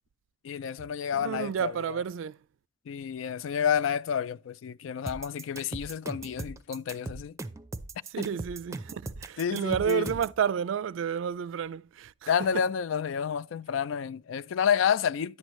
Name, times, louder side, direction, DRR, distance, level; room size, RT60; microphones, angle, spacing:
voice 1, 0.4-2.0 2.9-7.4 8.2-8.3 9.4-10.1 12.3-15.4, left 7 dB, 80° left, 0.3 m, -29 dB
voice 2, 1.1-2.4 8.1-12.6, right 8 dB, 75° right, 0.3 m, -31 dB
sound 1, 5.1-10.4, right 2 dB, 15° right, 0.5 m, -39 dB
10.5 x 7.9 x 3.1 m
head